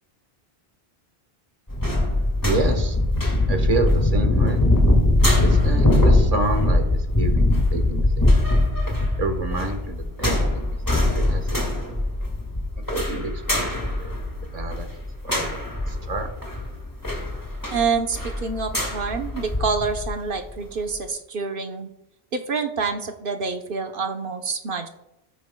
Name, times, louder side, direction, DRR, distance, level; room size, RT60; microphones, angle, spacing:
sound 1, 1.7-20.1 20.5-20.6, left 1 dB, 20° left, 2.0 m, -22 dB
voice 1, 2.4-3.0 3.5-4.6 5.4-6.8 7.1-8.3 9.2-10.6 10.9-11.4 11.8-11.9 12.9-14.1 14.5-14.9 15.2-15.4 15.9-16.3, right 2 dB, 40° right, 4 dB, 1.3 m, -28 dB
voice 2, 17.7-21.9 22.3-24.9, right 5 dB, 60° right, 5 dB, 1.0 m, -27 dB
13.5 x 9.5 x 2.2 m, 0.86 s
omnidirectional pair, 1.0 m